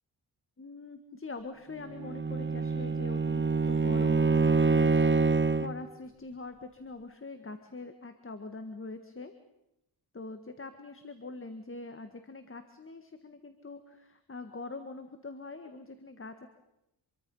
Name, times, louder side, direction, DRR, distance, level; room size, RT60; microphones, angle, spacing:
voice 1, 0.6-9.3 10.1-16.5, left 3 dB, 30° left, 8 dB, 1.7 m, -43 dB
Bowed string instrument, 1.9-5.8, right 4 dB, 25° right, 1.1 m, -26 dB
27.0 x 23.0 x 5.6 m, 0.87 s
cardioid pair, 80°, 42 cm